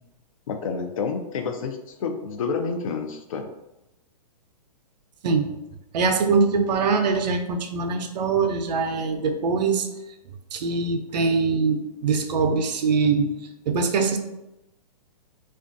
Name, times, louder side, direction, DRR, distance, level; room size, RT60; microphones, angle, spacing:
voice 1, 0.5-3.5, left 5 dB, 55° left, 5 dB, 0.4 m, -29 dB
voice 2, 5.9-9.9 10.5-13.3 13.7-14.2, right 4 dB, 85° right, 5 dB, 0.4 m, -23 dB
2.4 x 2.3 x 2.4 m, 0.91 s
hypercardioid pair, 165°, 21 cm